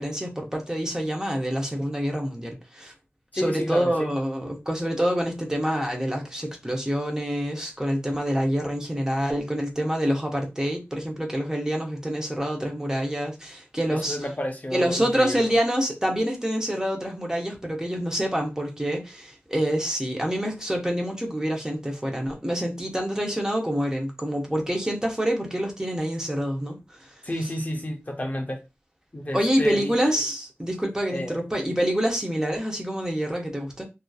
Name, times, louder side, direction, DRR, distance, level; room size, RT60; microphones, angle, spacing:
voice 1, 0.0-2.9 3.3-14.2 14.7-27.1 29.3-33.9, equal, 15° right, 0.7 m, -27 dB
voice 2, 3.3-4.1 13.9-15.5 27.2-28.6 29.1-29.9 31.1-31.4, equal, 35° left, 0.5 m, -30 dB
2.7 x 2.4 x 2.3 m
wide cardioid pair, 65°, 5 cm